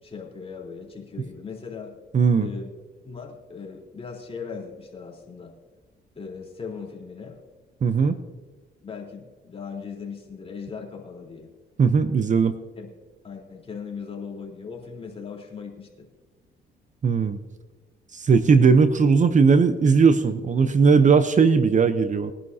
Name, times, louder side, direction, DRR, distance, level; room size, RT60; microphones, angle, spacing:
voice 1, 0.0-2.0 2.4-2.7 3.0-5.6 6.2-7.4 8.8-11.5 12.8-12.9 13.2-16.1, left 5 dB, 30° left, -1 dB, 3.7 m, -38 dB
voice 2, 2.1-2.5 7.8-8.2 11.8-12.5 17.0-17.4 18.1-22.3, right 5 dB, 40° right, 11 dB, 0.7 m, -18 dB
21.0 x 11.0 x 2.8 m, 1.3 s
cardioid pair, 90°, 20 cm